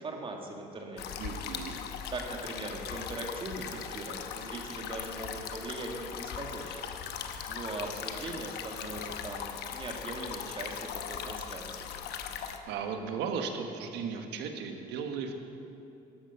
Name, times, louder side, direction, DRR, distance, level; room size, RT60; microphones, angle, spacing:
voice 1, 0.0-1.2 2.1-11.9, right 2 dB, 30° right, 2 dB, 1.9 m, -40 dB
sound 1, 1.0-12.6, left 8 dB, 75° left, 1.0 m, -39 dB
voice 2, 1.2-1.8 12.7-15.3, right 6 dB, 85° right, 5 dB, 1.3 m, -36 dB
13.5 x 10.0 x 5.6 m, 2.7 s
cardioid pair, 110°, 17 cm